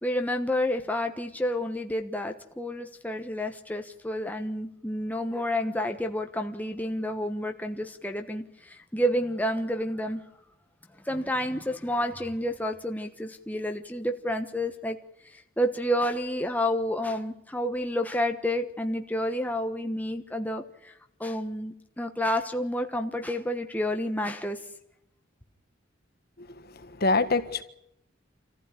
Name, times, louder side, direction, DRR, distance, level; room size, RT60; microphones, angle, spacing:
voice 1, 0.0-10.2 11.0-15.0 15.2-20.9 21.2-24.6, equal, 10° left, 5 dB, 1.2 m, -30 dB
voice 2, 26.4-27.6, left 3 dB, 50° left, 10 dB, 1.6 m, -26 dB
26.5 x 15.0 x 9.7 m, 0.78 s
head